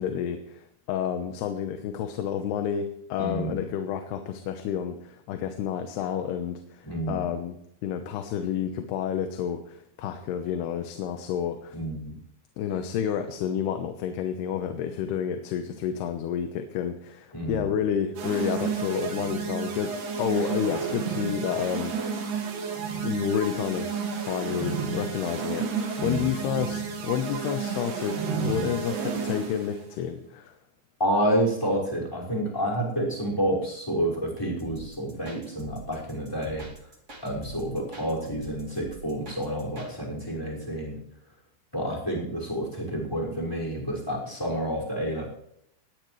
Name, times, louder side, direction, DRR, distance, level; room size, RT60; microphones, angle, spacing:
voice 1, 0.0-11.8 12.6-22.2 23.0-28.2 28.4-30.5, left 8 dB, 90° left, 6 dB, 3.1 m, -30 dB
voice 2, 3.2-3.6 6.8-7.3 11.7-12.2 17.3-17.7 26.0-26.3 31.0-36.7 37.2-41.0 41.7-45.3, right 1 dB, 5° left, 0 dB, 5.2 m, -29 dB
sound 1, 18.2-29.7, right 5 dB, 90° right, 4.8 m, -31 dB
sound 2, 34.6-39.9, right 2 dB, 25° right, 2.0 m, -44 dB
20.0 x 16.0 x 3.2 m, 0.75 s
omnidirectional pair, 4.5 m